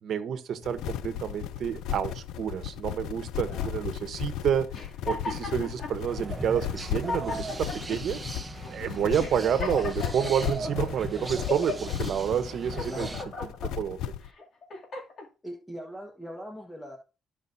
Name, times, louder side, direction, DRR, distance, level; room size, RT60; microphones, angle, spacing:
voice 1, 0.0-4.7 5.1-8.2 8.7-13.1 13.8-14.0, right 8 dB, 65° right, 1.1 m, -29 dB
sound 1, 0.6-14.3, left 11 dB, 90° left, 0.4 m, -35 dB
voice 2, 3.4-3.8 10.8-11.4 12.8-13.2 15.4-17.0, equal, 10° left, 1.4 m, -41 dB
girl lady laughing, 4.7-5.9 6.6-6.7 6.9-8.0 8.6-8.7 9.2-10.7 11.2-11.9 12.4-13.7 14.3-15.3, left 4 dB, 55° left, 2.6 m, -36 dB
sound 2, 6.1-13.2, right 3 dB, 25° right, 1.0 m, -39 dB
14.0 x 5.3 x 2.7 m
cardioid pair, 90°, 0 cm